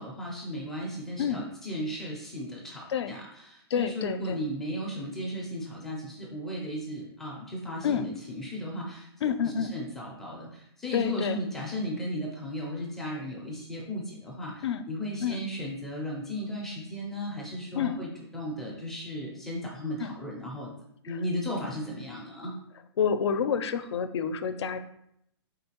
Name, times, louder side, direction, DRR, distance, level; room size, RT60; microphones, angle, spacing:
voice 1, 0.0-9.1 9.4-20.7 21.0-22.6, equal, ahead, -4 dB, 0.4 m, -35 dB
voice 2, 3.7-4.4 7.8-8.1 9.2-9.7 10.9-11.4 14.6-14.8 15.2-15.4 17.7-18.0 20.0-20.1 21.1-21.2 23.0-24.8, left 7 dB, 80° left, 10 dB, 0.4 m, -28 dB
4.5 x 3.8 x 2.8 m, 0.74 s
hypercardioid pair, 170°, 14 cm